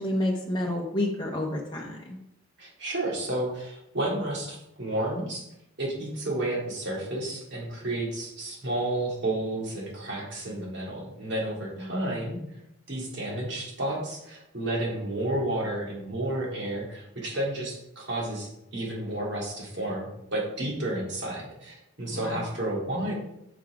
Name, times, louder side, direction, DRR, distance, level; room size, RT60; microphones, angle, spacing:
voice 1, 0.0-2.2 11.8-12.2 22.1-22.5, left 1 dB, 20° left, -2 dB, 0.8 m, -30 dB
voice 2, 2.6-5.5 5.8-12.4 12.9-23.1, right 1 dB, 55° right, -3 dB, 2.3 m, -31 dB
6.0 x 5.5 x 4.7 m, 0.82 s
head